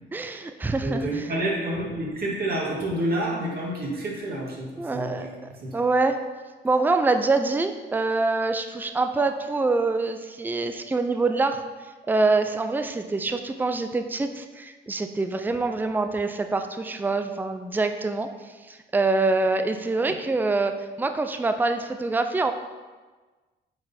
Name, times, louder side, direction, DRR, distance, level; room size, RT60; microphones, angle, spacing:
voice 1, 0.1-1.0 4.8-5.3 5.7-6.2 6.6-11.6 12.1-18.3 18.7-20.7 21.0-22.5, right 3 dB, 10° right, 7 dB, 0.4 m, -25 dB
voice 2, 0.8-5.8, right 1 dB, 50° right, -3 dB, 2.0 m, -29 dB
7.7 x 4.0 x 4.3 m, 1.3 s
cardioid pair, 90°, 20 cm